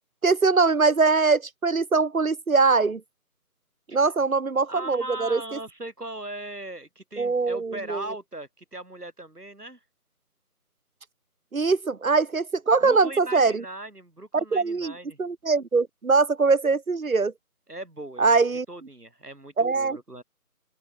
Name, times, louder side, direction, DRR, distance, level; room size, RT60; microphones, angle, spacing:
voice 1, 0.2-3.0 3.9-5.4 7.2-8.0 11.5-13.6 14.3-14.9 15.2-17.3 18.2-18.6 19.6-20.0, right 4 dB, 65° right, 1.0 m, -22 dB
voice 2, 4.7-9.8 12.8-15.2 17.7-18.4 18.7-20.2, right 1 dB, 80° right, 5.5 m, -39 dB
open air
figure-of-eight pair, 170°, 46 cm